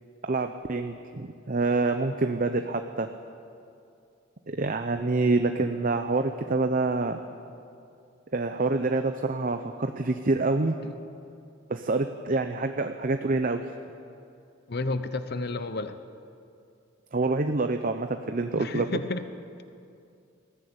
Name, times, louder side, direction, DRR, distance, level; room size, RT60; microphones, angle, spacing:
voice 1, 0.2-3.1 4.5-7.2 8.3-10.8 11.7-13.7 17.1-18.9, right 3 dB, 45° right, 7 dB, 0.7 m, -27 dB
voice 2, 14.7-15.9 18.6-19.2, left 2 dB, 55° left, 10 dB, 0.8 m, -31 dB
20.5 x 14.5 x 8.8 m, 2.5 s
head